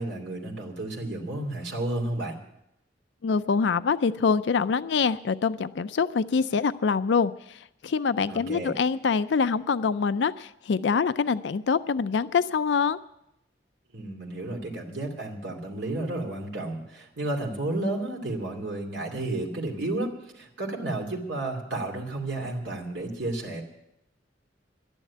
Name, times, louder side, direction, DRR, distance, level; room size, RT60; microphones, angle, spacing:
voice 1, 0.0-2.4 8.3-8.7 13.9-23.6, right 2 dB, 75° right, 1 dB, 2.7 m, -32 dB
voice 2, 3.2-13.0, left 5 dB, 75° left, 14 dB, 0.4 m, -25 dB
12.0 x 10.5 x 8.4 m, 0.82 s
head